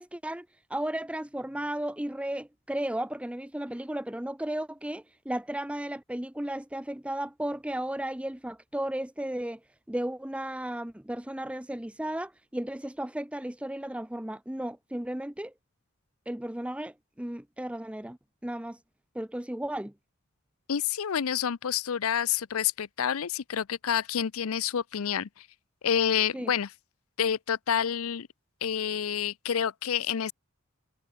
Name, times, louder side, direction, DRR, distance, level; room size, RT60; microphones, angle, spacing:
voice 1, 0.0-9.6 9.9-15.5 16.3-18.8 19.1-19.9 26.3-26.5, right 1 dB, 5° right, 0.6 m, -34 dB
voice 2, 20.7-25.5 25.8-26.7 27.2-28.3 28.6-30.3, left 8 dB, 90° left, 0.6 m, -28 dB
head